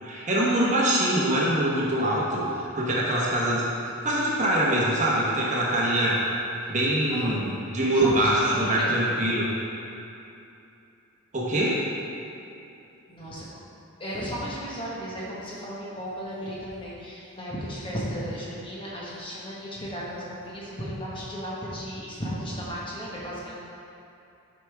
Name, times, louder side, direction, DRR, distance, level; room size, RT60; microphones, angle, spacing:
voice 1, 0.0-3.7 4.0-6.2 6.7-9.4 11.3-11.8, right 1 dB, 35° right, -5 dB, 1.0 m, -24 dB
voice 2, 8.0-8.9 13.1-13.4 14.0-23.6, equal, 25° left, -6 dB, 1.2 m, -35 dB
8.1 x 5.1 x 3.5 m, 2.8 s
head